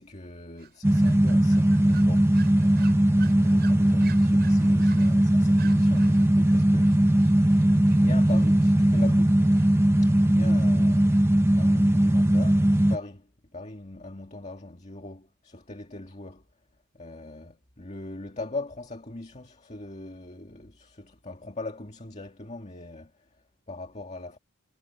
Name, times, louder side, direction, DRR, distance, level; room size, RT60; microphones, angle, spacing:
voice 1, 0.0-7.4 8.0-9.5 10.0-11.2 11.6-16.4 16.9-24.4, left 2 dB, 30° left, 2.0 m, -41 dB
sound 1, 0.6-11.2, right 8 dB, 50° right, 7.6 m, -51 dB
sound 2, 0.8-13.0, right 1 dB, 10° right, 0.7 m, -20 dB
head